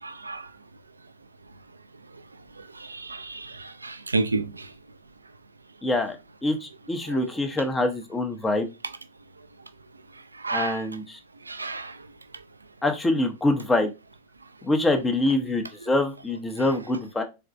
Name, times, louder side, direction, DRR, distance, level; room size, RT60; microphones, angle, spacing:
voice 1, 0.0-0.5 2.6-4.7 7.1-7.2 10.3-10.8 11.5-12.0, right 3 dB, 80° right, 0.4 m, -31 dB
voice 2, 5.8-6.2 6.4-8.7 10.5-11.2 12.8-13.9 14.6-17.2, left 2 dB, 10° left, 0.8 m, -25 dB
4.0 x 3.4 x 2.5 m
figure-of-eight pair, 90°, 0 cm